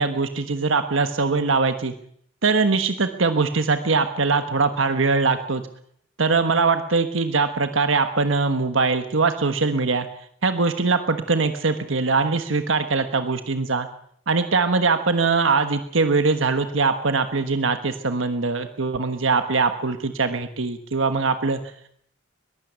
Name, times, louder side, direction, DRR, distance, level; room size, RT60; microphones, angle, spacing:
voice 1, 0.0-1.9 2.4-5.6 6.2-10.1 10.4-13.9 14.3-21.9, right 4 dB, 90° right, 8 dB, 1.3 m, -22 dB
21.5 x 15.0 x 8.2 m, 0.67 s
head